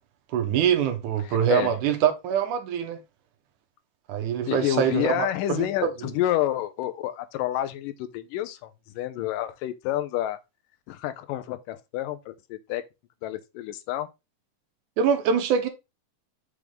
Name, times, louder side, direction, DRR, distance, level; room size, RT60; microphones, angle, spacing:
voice 1, 0.3-3.0 4.1-5.9 15.0-15.7, right 8 dB, 75° right, 2.2 m, -24 dB
voice 2, 1.2-1.7 4.5-10.4 10.9-12.8 13.2-14.1, left 13 dB, 85° left, 2.3 m, -29 dB
6.3 x 3.6 x 5.0 m
omnidirectional pair, 3.8 m